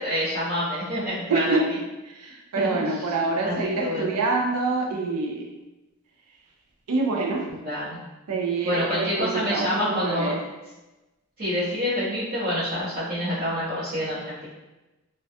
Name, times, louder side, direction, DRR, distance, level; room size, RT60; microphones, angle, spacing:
voice 1, 0.0-1.6 2.6-2.7 3.4-4.1 7.5-8.0 8.6-10.3 11.4-14.4, left 1 dB, 40° right, -13 dB, 0.6 m, -27 dB
voice 2, 1.3-1.7 2.1-5.5 6.9-7.5 8.3-10.4, right 3 dB, 90° right, 0 dB, 0.5 m, -26 dB
2.2 x 2.2 x 2.7 m, 1.1 s
head